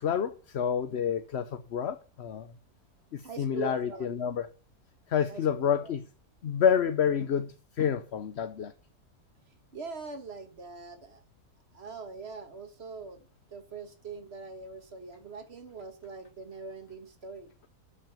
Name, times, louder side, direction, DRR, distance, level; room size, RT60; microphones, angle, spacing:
voice 1, 0.0-2.5 3.1-4.5 5.1-6.0 6.4-8.7, left 8 dB, 50° left, 1.0 m, -28 dB
voice 2, 3.2-4.1 5.3-6.0 9.7-11.2 11.7-17.5, right 4 dB, 40° right, 2.0 m, -42 dB
12.5 x 6.1 x 7.0 m
omnidirectional pair, 1.6 m